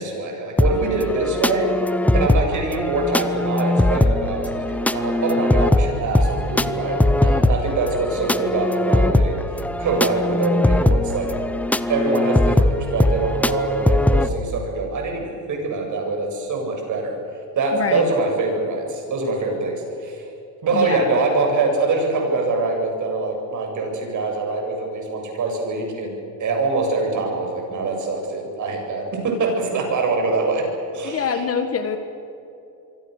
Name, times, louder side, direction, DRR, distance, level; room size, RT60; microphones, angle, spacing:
voice 1, 0.0-1.7 2.1-11.3 11.9-17.2 17.6-20.2 20.6-26.1 26.4-30.7 30.9-31.4, right 3 dB, 40° right, 2 dB, 7.8 m, -24 dB
sound 1, 0.6-14.3, left 1 dB, 5° left, 0.6 m, -20 dB
voice 2, 17.7-18.1 20.7-21.1 31.0-32.0, left 6 dB, 30° left, 8 dB, 1.8 m, -25 dB
27.0 x 24.0 x 6.8 m, 2.8 s
supercardioid pair, 125°, 48 cm